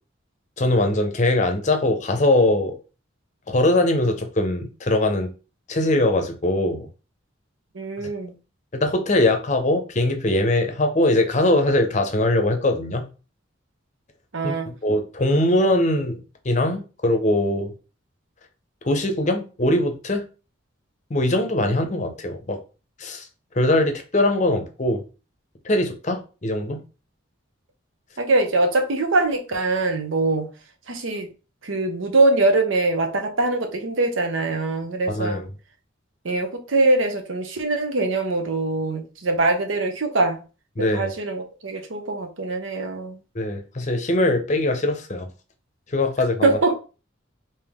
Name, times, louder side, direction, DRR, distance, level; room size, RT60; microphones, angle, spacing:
voice 1, 0.6-2.8 3.5-5.3 5.7-6.9 8.7-13.1 14.4-17.7 18.8-20.2 21.1-22.6 23.0-23.2 23.6-25.0 25.6-26.8 35.1-35.4 40.8-41.1 43.3-45.3 45.9-46.6, left 1 dB, 40° left, 0.6 m, -21 dB
voice 2, 7.7-8.3 14.3-14.7 28.2-30.5 30.9-31.3 31.6-35.4 36.2-40.4 40.8-43.2 46.4-46.7, right 2 dB, 80° right, 0.8 m, -22 dB
3.6 x 2.7 x 3.5 m
head